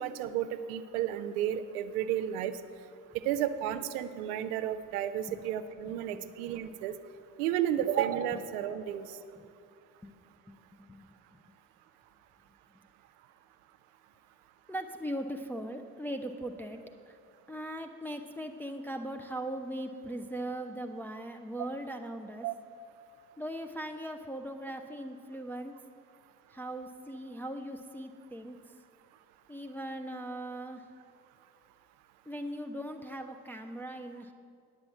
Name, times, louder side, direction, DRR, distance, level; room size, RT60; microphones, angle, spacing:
voice 1, 0.0-2.5 3.2-6.9 7.4-9.1 22.4-22.5, right 10 dB, 65° right, 11 dB, 0.7 m, -32 dB
voice 2, 5.8-6.3 9.4-9.5 10.0-10.1 10.8-11.4 14.7-17.2 17.5-22.5 23.4-25.8 26.5-28.6 29.5-30.9 32.3-34.3, right 1 dB, 5° left, 4 dB, 0.4 m, -39 dB
9.6 x 7.3 x 6.8 m, 2.4 s
figure-of-eight pair, 50°, 49 cm